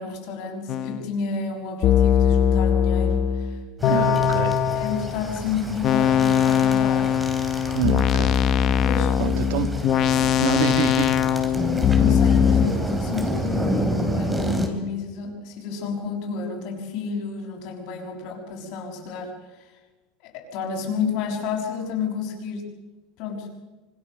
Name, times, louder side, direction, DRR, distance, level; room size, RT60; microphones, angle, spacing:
voice 1, 0.0-4.1 4.7-7.1 8.8-9.2 12.0-19.7 20.3-22.7 23.2-23.5, left 5 dB, 50° left, 2 dB, 6.2 m, -31 dB
sound 1, 0.7-1.0 1.8-5.2 5.8-12.7, left 8 dB, 30° left, 1.0 m, -20 dB
sound 2, 3.8-14.7, right 1 dB, 5° right, 2.7 m, -30 dB
voice 2, 3.9-4.6 7.7-8.4 9.2-9.8 10.4-11.2, right 7 dB, 65° right, 8 dB, 2.2 m, -26 dB
26.5 x 25.0 x 6.5 m, 1.2 s
supercardioid pair, 170°, 0 cm